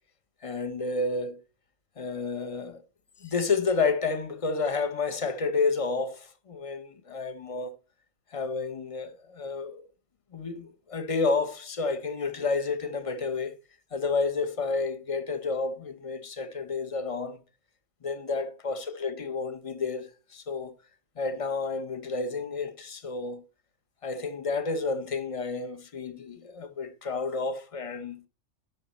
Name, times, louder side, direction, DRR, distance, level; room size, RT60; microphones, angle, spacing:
voice 1, 0.4-1.4 2.0-2.8 3.2-7.7 8.3-9.9 10.3-13.5 13.9-17.4 18.0-20.7 21.2-23.4 24.0-28.2, left 4 dB, 35° left, 0.7 m, -30 dB
11.0 x 5.7 x 4.1 m
omnidirectional pair, 1.3 m